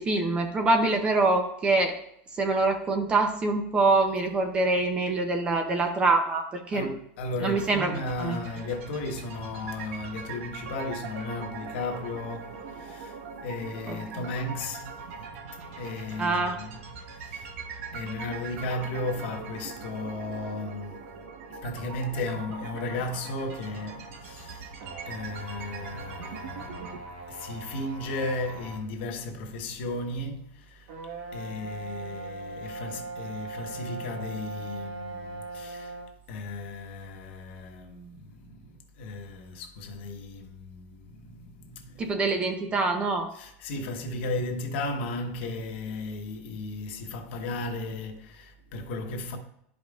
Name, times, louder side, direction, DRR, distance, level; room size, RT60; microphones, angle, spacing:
voice 1, 0.0-1.9 2.4-6.9 7.4-8.4 13.9-14.3 16.2-16.6 42.0-43.3, right 3 dB, 15° right, 0.6 m, -25 dB
voice 2, 6.7-13.2 13.4-14.9 15.8-17.5 17.9-21.1 21.5-24.7 25.1-30.9 31.3-36.0 36.3-42.2 43.3-49.4, left 2 dB, 60° left, 1.1 m, -35 dB
sound 1, 7.5-27.0, right 5 dB, 85° right, 1.0 m, -41 dB
sound 2, 24.8-28.9 29.5-29.6 30.9-36.2, right 3 dB, 70° right, 1.3 m, -40 dB
12.0 x 5.1 x 2.3 m
supercardioid pair, 175°, 7 cm